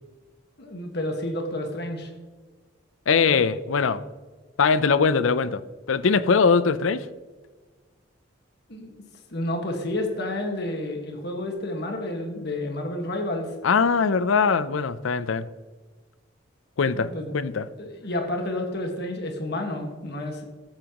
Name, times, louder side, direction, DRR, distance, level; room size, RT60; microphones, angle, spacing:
voice 1, 0.6-2.1 8.7-8.9 9.3-13.5 16.9-17.3 17.8-20.4, left 1 dB, 55° left, 3 dB, 1.6 m, -30 dB
voice 2, 3.1-4.0 4.6-5.6 5.9-7.0 13.6-15.5 16.8-17.7, left 5 dB, 80° left, 15 dB, 0.5 m, -21 dB
14.5 x 8.9 x 3.0 m, 1.3 s
head